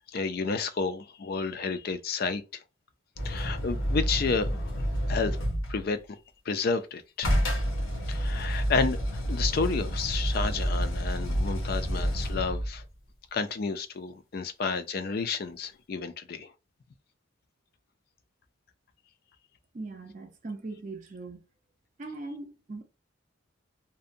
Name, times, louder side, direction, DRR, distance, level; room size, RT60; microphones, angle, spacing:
voice 1, 0.1-2.6 3.2-4.7 5.1-5.4 5.7-6.0 6.5-7.4 8.1-12.8 13.3-16.5, left 4 dB, 50° left, 0.4 m, -31 dB
sound 1, 3.2-5.9 7.2-12.8 15.6-15.7, equal, 75° left, 0.8 m, -29 dB
voice 2, 19.7-21.4 22.0-22.8, right 3 dB, 40° right, 0.4 m, -40 dB
2.6 x 2.1 x 2.5 m
head